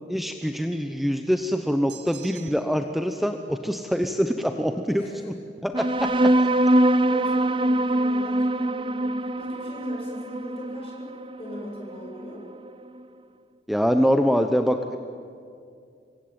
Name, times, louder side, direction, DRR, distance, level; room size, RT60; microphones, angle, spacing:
voice 1, 0.1-5.3 5.6-6.1 6.4-6.5 13.7-15.0, equal, ahead, 6 dB, 0.9 m, -24 dB
sound 1, 1.9-2.9, right 10 dB, 75° right, 2.1 m, -46 dB
sound 2, 5.7-12.7, right 1 dB, 30° right, 0.7 m, -23 dB
voice 2, 7.0-12.4, equal, 35° left, -2 dB, 8.0 m, -40 dB
27.5 x 23.5 x 8.9 m, 2.4 s
head